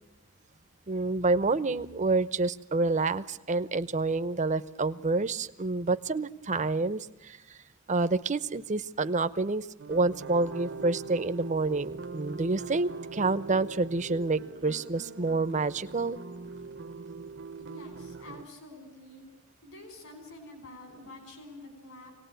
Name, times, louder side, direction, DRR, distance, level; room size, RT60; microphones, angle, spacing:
voice 1, 0.9-7.6 7.9-16.2, right 3 dB, 35° right, 12 dB, 0.8 m, -28 dB
sound 1, 9.8-18.5, right 4 dB, 60° right, 0.9 m, -42 dB
voice 2, 17.6-19.2 19.6-22.1, left 2 dB, 65° left, 5 dB, 5.4 m, -48 dB
26.0 x 18.5 x 9.1 m, 1.0 s
head